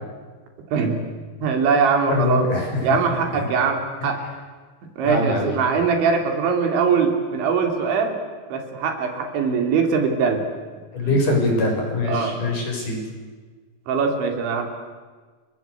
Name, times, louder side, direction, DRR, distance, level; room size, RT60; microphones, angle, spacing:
voice 1, 0.7-1.0 1.4-2.5 2.8-4.2 5.0-8.2 8.5-10.4 11.1-11.2 12.1-12.4 13.9-14.6, right 5 dB, 75° right, 4 dB, 5.5 m, -21 dB
voice 2, 2.1-3.0 3.3-3.5 5.0-5.6 10.9-13.0, left 2 dB, 45° left, 0 dB, 8.4 m, -23 dB
30.0 x 23.5 x 8.3 m, 1.4 s
omnidirectional pair, 5.3 m